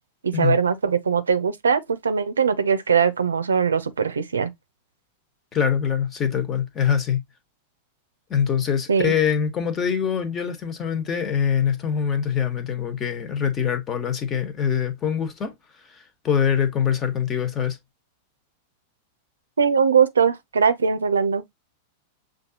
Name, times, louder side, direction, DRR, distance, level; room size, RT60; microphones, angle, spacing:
voice 1, 0.2-4.5 8.9-9.1 19.6-21.4, right 6 dB, 85° right, 0.5 m, -21 dB
voice 2, 5.5-7.2 8.3-15.5 15.9-17.8, left 8 dB, 30° left, 1.2 m, -24 dB
6.2 x 2.6 x 2.8 m
hypercardioid pair, 100°, 0 cm